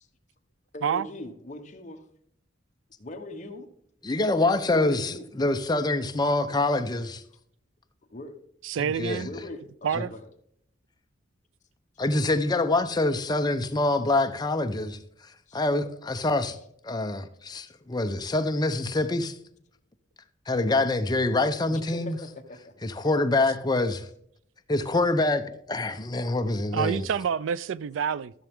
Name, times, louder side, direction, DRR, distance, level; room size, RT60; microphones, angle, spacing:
voice 1, 0.7-2.0 3.0-3.7 4.7-5.2 8.1-8.3 9.1-10.3 15.5-15.6 21.7-22.9, left 1 dB, 40° left, 1.1 m, -40 dB
voice 2, 4.0-7.2 8.8-9.2 12.0-15.0 15.5-16.6 16.8-19.4 20.5-22.2 22.8-24.1 24.7-27.0, left 2 dB, 20° left, 0.6 m, -25 dB
voice 3, 8.6-9.3 9.8-10.1 26.7-28.3, right 7 dB, 85° right, 0.4 m, -27 dB
13.5 x 7.0 x 3.6 m
head